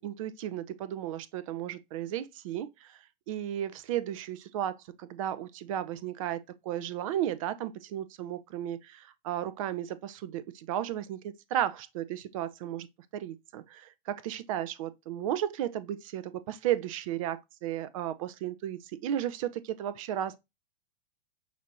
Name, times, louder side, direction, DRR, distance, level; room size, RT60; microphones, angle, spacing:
voice 1, 0.0-3.0 3.3-12.9 13.1-20.4, right 11 dB, 35° right, 0.5 m, -34 dB
6.0 x 2.7 x 2.8 m
figure-of-eight pair, 100°, 29 cm